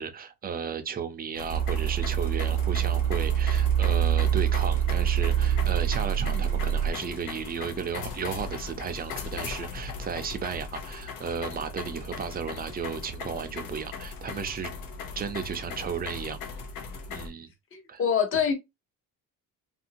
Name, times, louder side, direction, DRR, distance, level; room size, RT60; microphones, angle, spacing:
voice 1, 0.0-14.7 15.2-16.4 17.1-17.5 17.9-18.0, right 7 dB, 30° right, 0.4 m, -34 dB
sound 1, 1.4-17.3, left 5 dB, 80° left, 0.8 m, -39 dB
sound 2, 1.5-6.9, right 9 dB, 90° right, 0.7 m, -25 dB
voice 2, 17.7-18.5, left 7 dB, 40° left, 0.8 m, -26 dB
2.8 x 2.6 x 2.6 m
cardioid pair, 145°, 33 cm